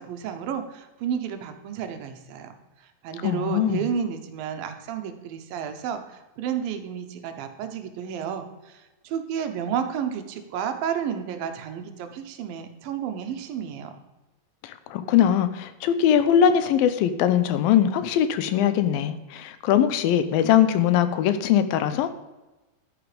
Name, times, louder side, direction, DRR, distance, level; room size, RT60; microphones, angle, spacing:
voice 1, 0.0-2.6 3.0-13.9, right 8 dB, 80° right, 7 dB, 2.8 m, -31 dB
voice 2, 3.2-3.8 14.6-22.1, left 9 dB, 85° left, 12 dB, 2.6 m, -21 dB
11.5 x 9.4 x 5.0 m, 1.1 s
omnidirectional pair, 4.1 m